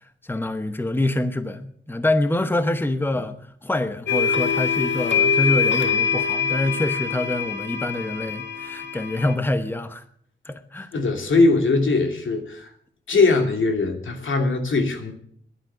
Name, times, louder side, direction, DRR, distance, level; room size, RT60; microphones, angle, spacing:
voice 1, 0.2-3.4 3.6-10.0 10.4-10.9, left 1 dB, 10° left, 10 dB, 1.0 m, -25 dB
sound 1, 4.1-9.3, left 6 dB, 65° left, 1.7 m, -24 dB
voice 2, 10.9-12.7 13.1-15.1, left 3 dB, 80° left, 4 dB, 2.7 m, -20 dB
11.5 x 10.0 x 9.4 m, 0.62 s
wide cardioid pair, 110°, 20 cm